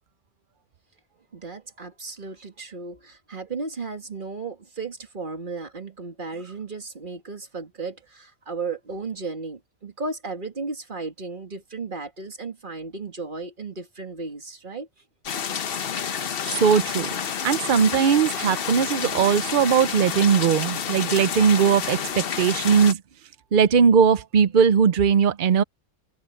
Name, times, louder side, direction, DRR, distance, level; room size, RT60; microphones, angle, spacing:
voice 1, 1.3-14.9, right 3 dB, 35° right, 2.1 m, -35 dB
sound 1, 15.2-22.9, left 7 dB, 50° left, 0.8 m, -29 dB
voice 2, 16.4-17.1 17.4-23.0 23.5-25.6, right 7 dB, 55° right, 0.5 m, -19 dB
omnidirectional pair, 1.6 m